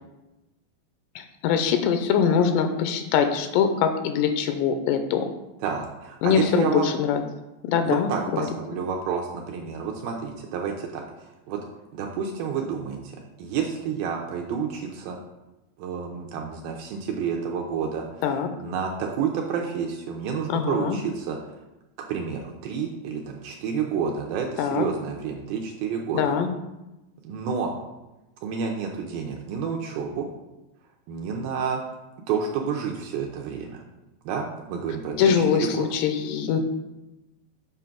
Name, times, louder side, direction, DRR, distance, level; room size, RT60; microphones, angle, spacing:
voice 1, 1.2-5.3 6.2-7.2 7.6-8.5 18.2-18.5 20.5-21.0 24.6-24.9 26.1-26.5 35.2-36.6, left 7 dB, 90° left, 7 dB, 2.8 m, -23 dB
voice 2, 5.6-6.9 7.8-11.0 11.5-11.6 11.9-13.1 13.4-15.2 15.8-18.1 18.6-21.4 22.1-26.2 27.2-27.7 28.4-30.3 31.1-31.8 32.3-33.8 34.3-35.9, right 6 dB, 80° right, 1 dB, 2.3 m, -29 dB
7.6 x 3.8 x 5.8 m, 1.0 s
omnidirectional pair, 4.8 m